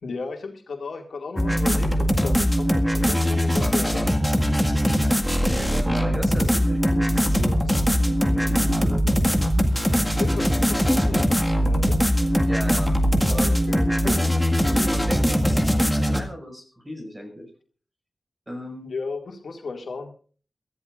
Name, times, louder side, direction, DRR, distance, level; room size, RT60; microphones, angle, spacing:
voice 1, 0.0-4.1 10.2-11.3 11.6-12.0 13.5-14.2 18.9-20.1, left 4 dB, 90° left, 3 dB, 2.2 m, -34 dB
sound 1, 1.4-16.2, equal, ahead, 1.9 m, -21 dB
voice 2, 5.4-9.0 12.5-13.0 13.3-14.3 14.6-15.6 16.0-17.5 18.5-18.9, equal, 15° right, 4 dB, 6.2 m, -36 dB
23.0 x 14.0 x 2.5 m, 0.40 s
wide cardioid pair, 95°, 0 cm